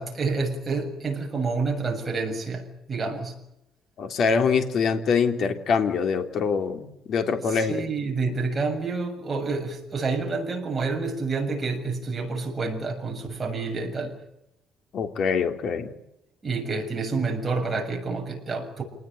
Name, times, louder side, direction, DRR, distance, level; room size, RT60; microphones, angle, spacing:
voice 1, 0.0-3.4 7.5-14.2 16.4-18.8, right 4 dB, 20° right, 2 dB, 7.1 m, -28 dB
voice 2, 4.0-7.9 14.9-15.9, left 5 dB, 50° left, 6 dB, 3.4 m, -24 dB
27.5 x 20.0 x 9.0 m, 0.84 s
cardioid pair, 145°, 0 cm